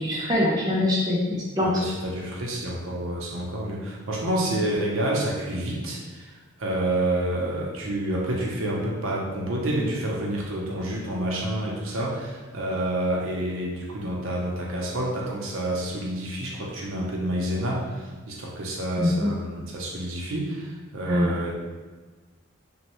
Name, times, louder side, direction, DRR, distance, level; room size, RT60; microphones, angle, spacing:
voice 1, 0.0-1.8 19.0-19.3 21.1-21.3, left 1 dB, 20° right, -5 dB, 0.4 m, -23 dB
voice 2, 1.6-6.3 6.6-21.5, right 1 dB, 75° right, -2 dB, 0.6 m, -28 dB
3.0 x 2.1 x 2.9 m, 1.3 s
head